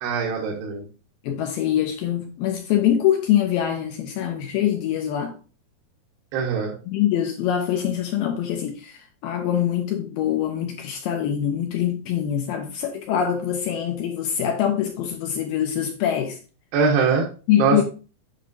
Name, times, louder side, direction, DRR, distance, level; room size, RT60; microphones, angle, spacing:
voice 1, 0.0-0.8 6.3-6.7 16.7-17.3 17.6-17.8, right 5 dB, 80° right, 3.0 m, -22 dB
voice 2, 1.2-5.3 6.9-16.4 17.5-17.8, left 10 dB, 80° left, 2.1 m, -24 dB
8.4 x 5.5 x 2.5 m
omnidirectional pair, 4.6 m